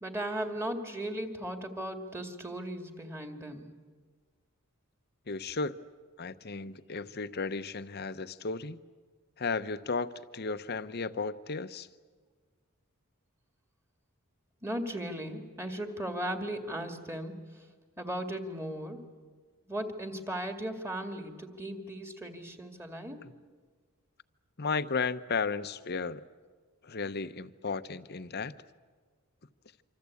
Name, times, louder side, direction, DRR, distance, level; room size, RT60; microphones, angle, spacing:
voice 1, 0.0-3.6 14.6-17.4 18.0-19.0 19.7-23.2, right 1 dB, 10° right, 5 dB, 2.1 m, -37 dB
voice 2, 5.3-5.8 6.2-8.8 9.4-11.9 24.6-26.2 26.8-28.5, left 4 dB, 45° left, 12 dB, 0.8 m, -34 dB
26.0 x 26.0 x 8.4 m, 1.5 s
head